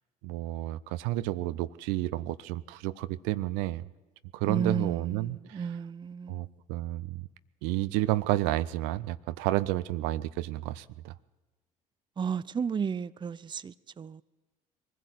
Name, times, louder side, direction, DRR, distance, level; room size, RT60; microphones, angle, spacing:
voice 1, 0.2-3.9 4.3-5.7 6.3-7.3 7.6-11.1, right 16 dB, 65° right, 0.6 m, -31 dB
voice 2, 4.5-6.5 12.2-14.2, right 6 dB, 25° right, 0.6 m, -33 dB
23.0 x 15.5 x 8.2 m
figure-of-eight pair, 55°, 19 cm